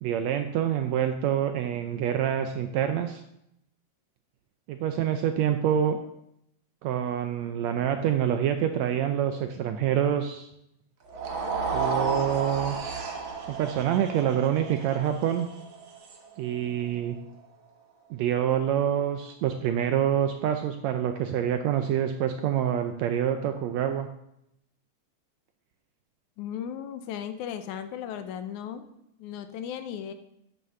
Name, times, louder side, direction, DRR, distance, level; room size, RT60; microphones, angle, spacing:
voice 1, 0.0-3.2 4.7-6.0 6.8-10.5 11.7-12.8 13.5-15.5 16.4-17.2 18.1-24.1, right 9 dB, 80° right, 7 dB, 1.6 m, -26 dB
sound 1, 11.1-17.3, right 4 dB, 55° right, 1.5 m, -33 dB
voice 2, 26.4-28.9 29.2-30.1, left 9 dB, 75° left, 10 dB, 2.0 m, -36 dB
8.9 x 6.8 x 6.6 m, 0.79 s
omnidirectional pair, 3.7 m